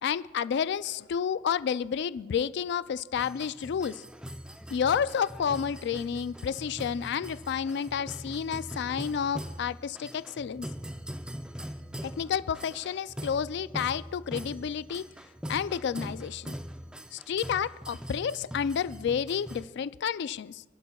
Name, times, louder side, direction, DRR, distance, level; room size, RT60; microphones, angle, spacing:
voice 1, 0.0-4.0 4.7-10.7 12.0-15.1 15.5-16.5 17.1-20.6, left 7 dB, 65° left, 17 dB, 0.3 m, -30 dB
sound 1, 3.2-19.6, equal, 5° right, 0.5 m, -42 dB
29.0 x 11.5 x 2.3 m, 1.2 s
head